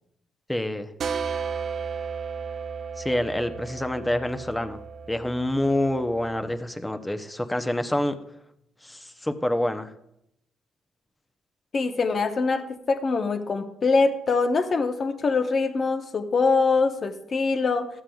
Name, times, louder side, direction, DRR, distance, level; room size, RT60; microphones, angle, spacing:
voice 1, 0.5-0.9 3.0-4.8 5.1-8.1 8.8-9.9, left 1 dB, 10° left, 8 dB, 0.6 m, -27 dB
sound 1, 1.0-6.5, right 6 dB, 60° right, 0.6 m, -34 dB
voice 2, 11.7-17.9, left 4 dB, 45° left, 8 dB, 0.8 m, -23 dB
12.5 x 7.4 x 2.3 m, 0.77 s
cardioid pair, 90°, 0 cm